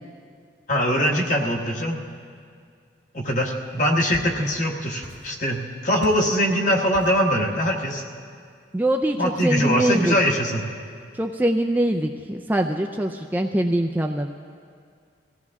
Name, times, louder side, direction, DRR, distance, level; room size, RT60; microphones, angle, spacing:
voice 1, 0.7-2.0 3.1-8.0 9.2-10.6, equal, 40° left, 1 dB, 1.4 m, -22 dB
sound 1, 3.7-4.7 5.0-5.6 6.0-6.4 6.9-7.3, equal, 55° left, 1.6 m, -42 dB
voice 2, 8.7-10.2 11.1-14.3, right 1 dB, 10° right, 4 dB, 0.4 m, -23 dB
22.0 x 16.0 x 3.6 m, 2.2 s
head